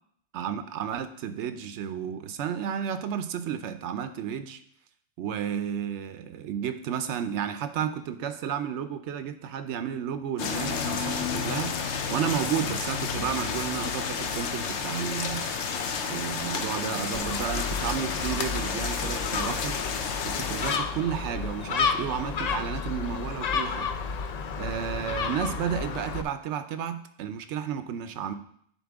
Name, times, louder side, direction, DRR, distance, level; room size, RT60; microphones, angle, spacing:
voice 1, 0.3-4.6 5.2-11.7 12.1-15.5 16.1-19.8 20.2-23.9 24.6-28.3, right 8 dB, 80° right, 10 dB, 0.9 m, -32 dB
sound 1, 10.4-20.8, left 6 dB, 80° left, 1.0 m, -31 dB
Gull seagull, 17.1-26.2, left 5 dB, 55° left, 0.4 m, -32 dB
10.5 x 4.3 x 3.5 m, 0.66 s
omnidirectional pair, 1.2 m